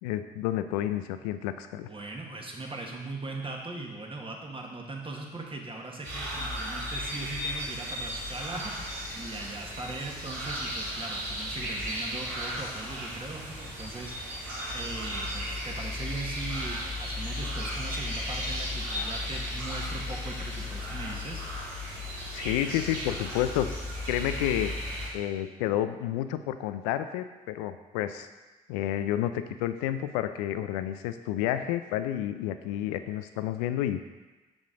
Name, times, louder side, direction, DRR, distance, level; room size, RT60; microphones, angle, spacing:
voice 1, 0.0-1.9 22.3-23.7 24.1-24.8 25.1-28.3 28.7-34.0, left 12 dB, 80° left, 11 dB, 0.4 m, -30 dB
voice 2, 1.8-14.4 14.7-21.5, right 2 dB, 30° right, 0 dB, 1.5 m, -39 dB
sound 1, 6.0-25.1, left 1 dB, 85° right, 2.4 m, -35 dB
6.6 x 6.1 x 3.8 m, 1.2 s
hypercardioid pair, 45°, 19 cm